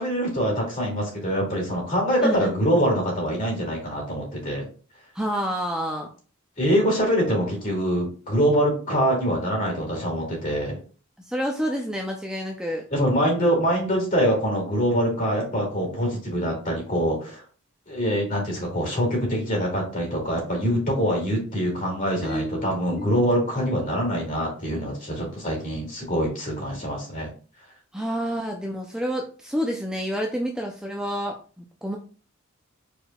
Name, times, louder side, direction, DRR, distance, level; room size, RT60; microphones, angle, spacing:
voice 1, 0.0-4.6 6.6-10.8 12.9-17.4 17.9-27.3, equal, 40° left, -1 dB, 2.4 m, -24 dB
voice 2, 2.2-2.6 5.1-6.1 11.3-12.9 22.2-22.7 23.0-23.4 27.9-32.0, equal, 5° right, 1 dB, 0.4 m, -29 dB
5.2 x 4.3 x 2.3 m, 0.38 s
head